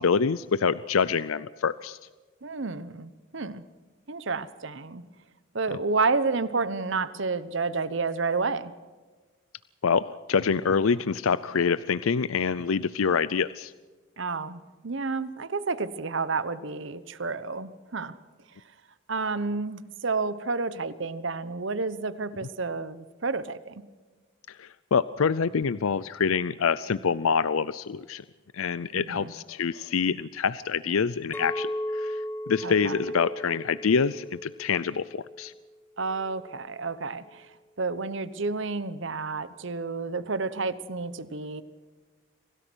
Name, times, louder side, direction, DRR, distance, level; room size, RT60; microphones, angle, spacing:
voice 1, 0.0-2.0 9.8-13.7 24.5-28.2 28.5-35.5, left 6 dB, 85° left, 16 dB, 0.5 m, -26 dB
voice 2, 2.4-3.6 4.1-5.0 5.5-8.7 14.2-18.2 19.1-23.8 28.9-29.3 32.6-32.9 36.0-37.5 37.8-41.6, right 4 dB, 65° right, 15 dB, 1.0 m, -30 dB
Chink clink, 31.3-35.6 36.1-36.5, left 1 dB, 10° left, 1.3 m, -36 dB
26.5 x 17.5 x 6.3 m, 1.3 s
head